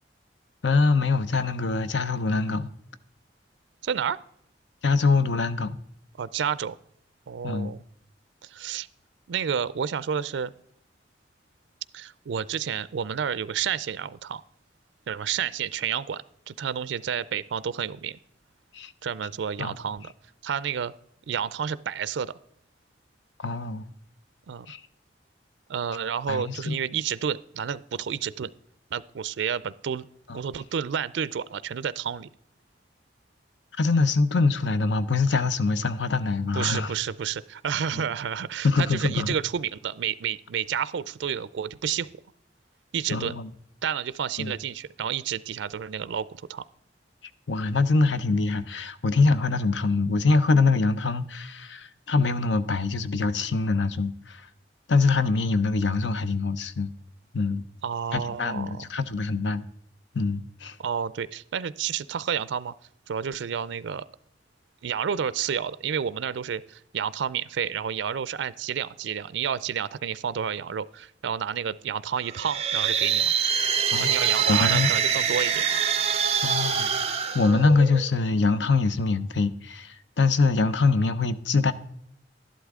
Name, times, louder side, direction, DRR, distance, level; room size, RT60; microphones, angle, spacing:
voice 1, 0.6-2.7 4.8-5.8 7.4-7.7 18.7-18.9 19.6-19.7 23.4-23.8 24.7-24.8 26.3-26.7 30.3-30.4 33.8-36.9 37.9-38.1 38.6-39.3 43.1-43.5 44.4-44.5 47.5-54.5 54.9-56.9 57.3-57.6 58.1-59.6 60.1-60.8 73.9-74.9 76.4-76.9 77.3-81.7, left 3 dB, 80° left, 0.7 m, -24 dB
voice 2, 3.8-4.2 6.2-6.8 7.3-7.8 8.4-8.9 9.3-10.5 11.9-14.4 15.1-18.2 19.0-20.1 20.4-20.9 21.3-22.3 24.5-24.7 25.7-28.5 28.9-30.1 30.3-32.3 36.5-42.1 42.9-43.3 43.8-46.6 57.8-58.9 60.8-62.7 63.1-64.0 64.8-73.3 74.0-75.7, right 8 dB, 90° right, 0.4 m, -30 dB
sound 1, 72.3-78.2, right 7 dB, 35° right, 0.9 m, -25 dB
12.0 x 11.5 x 3.6 m
head